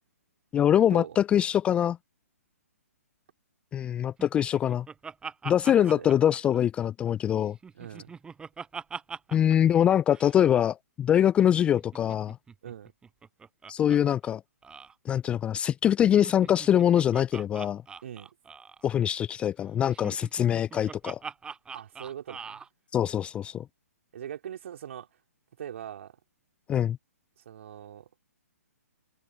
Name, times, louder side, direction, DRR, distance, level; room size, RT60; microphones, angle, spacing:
voice 1, 0.5-2.0 3.7-4.9 5.4-7.6 9.3-12.4 13.7-14.4 15.1-17.8 18.8-21.2 22.9-23.6 26.7-27.0, left 10 dB, 10° left, 0.4 m, -24 dB
Laughter, 4.2-7.1 7.5-9.6 9.8-9.9 10.1-10.4 11.6-14.0 14.2-14.3 14.6-14.9 16.1-18.9 19.9-22.7, right 5 dB, 10° right, 6.9 m, -43 dB
voice 2, 5.7-6.1 7.7-8.1 12.6-12.9 18.0-18.3 21.7-22.6 24.1-25.1 25.6-26.2 27.4-28.1, right 10 dB, 50° right, 3.4 m, -41 dB
figure-of-eight pair, 130°, 9 cm